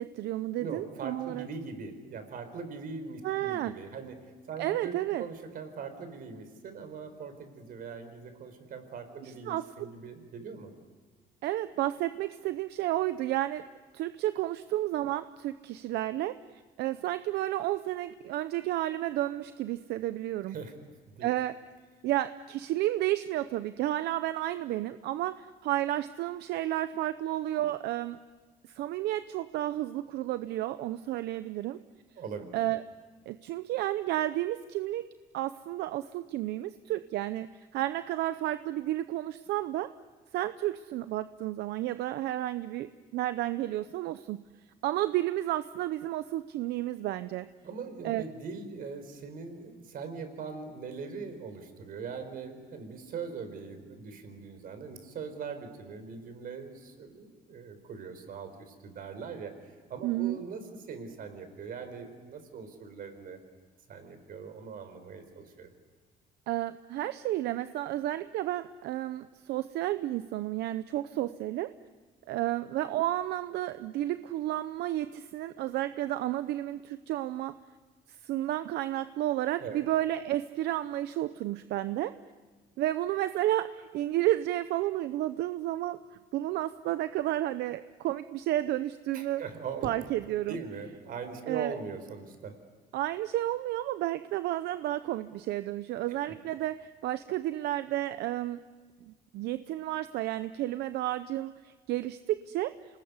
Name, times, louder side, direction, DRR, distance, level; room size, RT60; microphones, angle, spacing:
voice 1, 0.0-1.5 3.2-3.7 4.6-5.2 9.2-9.6 11.4-13.6 13.9-20.6 21.2-21.6 22.0-28.2 28.7-31.8 32.5-32.8 33.3-35.1 35.3-39.9 40.3-44.4 44.8-47.5 48.0-48.2 60.0-60.4 66.5-71.7 72.3-77.6 78.2-82.1 82.8-86.0 86.3-89.4 89.8-90.6 91.5-91.7 92.9-98.6 99.1-102.8, right 14 dB, 80° right, 12 dB, 0.8 m, -31 dB
voice 2, 0.6-4.9 5.2-10.7 20.5-20.7 21.1-21.3 32.2-32.5 47.6-59.5 59.9-63.4 63.9-65.7 79.6-79.8 89.1-89.9 90.5-92.5, right 5 dB, 60° right, 8 dB, 4.6 m, -41 dB
27.0 x 20.0 x 9.6 m, 1.4 s
cardioid pair, 110°, 17 cm